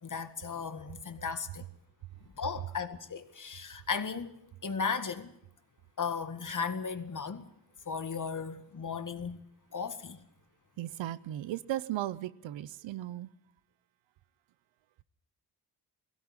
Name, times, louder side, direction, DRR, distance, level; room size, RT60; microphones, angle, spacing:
voice 1, 0.0-1.6 2.2-5.4 6.0-7.5 7.9-9.4 9.7-10.3, left 5 dB, 45° left, 2.0 m, -36 dB
voice 2, 0.6-0.9 10.8-13.3, right 13 dB, 85° right, 0.8 m, -36 dB
17.5 x 16.0 x 9.8 m
cardioid pair, 60°, 44 cm